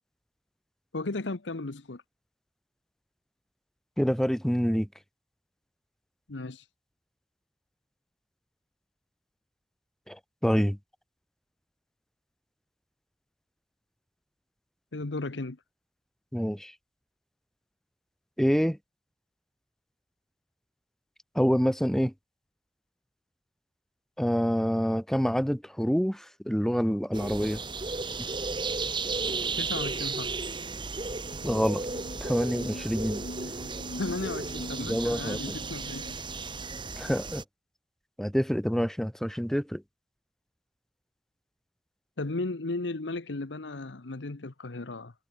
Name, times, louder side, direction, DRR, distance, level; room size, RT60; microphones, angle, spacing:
voice 1, 0.9-2.0 6.3-6.6 14.9-15.6 29.6-30.3 34.0-36.1 42.2-45.1, left 2 dB, 90° left, 1.1 m, -35 dB
voice 2, 4.0-4.9 10.1-10.8 16.3-16.7 18.4-18.8 21.4-22.1 24.2-27.6 31.4-31.8 32.2-33.2 34.8-35.6 37.0-37.4 38.2-39.8, equal, ahead, 1.8 m, -27 dB
sound 1, 27.1-37.4, right 4 dB, 25° right, 2.2 m, -34 dB
sound 2, 31.1-36.8, equal, 55° left, 6.3 m, -44 dB
head